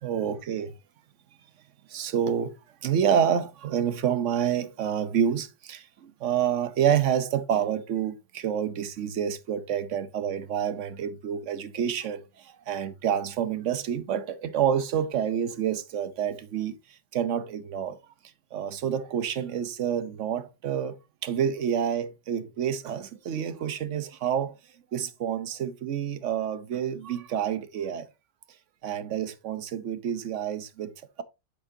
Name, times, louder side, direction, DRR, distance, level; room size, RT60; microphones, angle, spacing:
voice 1, 0.0-0.7 1.9-2.6 2.8-16.8 17.1-18.0 18.5-21.0 21.2-24.5 24.9-28.1 28.8-31.2, right 8 dB, 65° right, 1.1 m, -28 dB
8.0 x 6.2 x 2.7 m
omnidirectional pair, 1.4 m